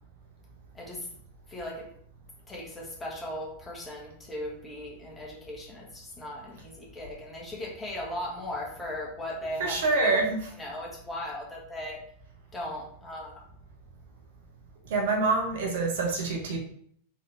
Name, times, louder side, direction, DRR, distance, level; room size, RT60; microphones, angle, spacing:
voice 1, 0.7-1.1 1.5-1.9 2.5-10.2 10.6-12.0 12.5-13.4, left 1 dB, 15° left, -3 dB, 1.7 m, -37 dB
voice 2, 9.6-10.2 14.9-16.6, right 3 dB, 55° right, 1 dB, 1.0 m, -26 dB
3.9 x 3.6 x 3.5 m, 0.66 s
figure-of-eight pair, 90°, 0 cm